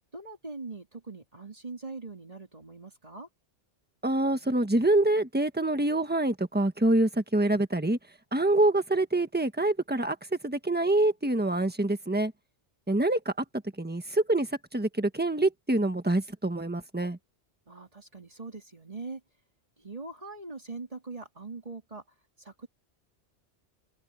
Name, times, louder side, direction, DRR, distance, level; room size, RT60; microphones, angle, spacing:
voice 1, 0.1-3.3 17.7-19.2 19.8-22.0 22.4-22.7, right 3 dB, 30° right, 3.2 m, -42 dB
voice 2, 4.0-8.0 8.3-10.2 10.4-12.3 12.9-13.3 13.8-17.2, right 2 dB, 10° right, 1.4 m, -26 dB
open air
omnidirectional pair, 1.2 m